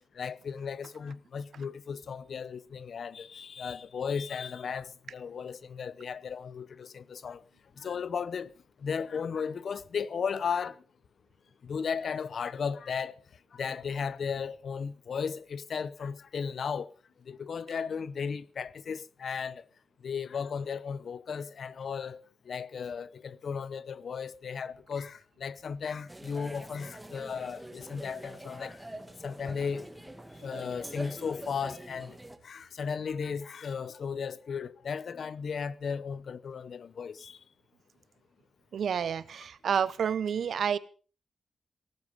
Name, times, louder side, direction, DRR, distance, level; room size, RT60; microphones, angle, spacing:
voice 1, 0.1-7.4 7.8-8.5 8.8-10.8 11.6-13.2 13.5-16.9 17.3-19.6 20.0-28.8 29.2-29.9 30.4-32.2 32.4-37.4, left 6 dB, 65° left, 0.8 m, -35 dB
sound 1, 26.1-32.4, right 1 dB, 10° right, 2.4 m, -45 dB
voice 2, 38.7-40.8, right 7 dB, 75° right, 1.0 m, -29 dB
18.0 x 14.5 x 5.4 m
wide cardioid pair, 110°, 0 cm